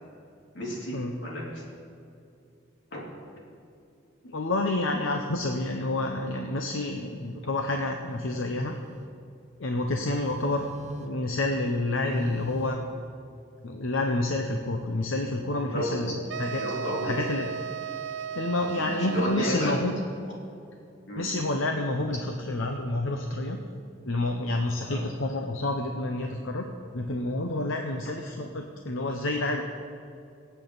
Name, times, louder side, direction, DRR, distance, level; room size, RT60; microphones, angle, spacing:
voice 1, 0.5-1.6 2.9-3.0 15.6-16.1 16.5-17.2 18.7-19.9 21.1-21.3 24.9-25.0, equal, 65° left, -4 dB, 3.6 m, -32 dB
voice 2, 4.2-8.8 9.6-10.6 11.0-12.8 13.6-16.6 17.0-17.4 18.3-19.9 21.2-23.6 24.0-26.7 26.9-29.6, left 2 dB, 85° left, 3 dB, 0.9 m, -29 dB
Telephone, 6.9-7.2 8.1-9.2 10.1-11.3 12.1-12.8, right 1 dB, 35° right, 0.8 m, -42 dB
sound 1, 16.3-20.0, right 7 dB, 65° right, 0.4 m, -35 dB
24.5 x 8.2 x 4.1 m, 2.5 s
head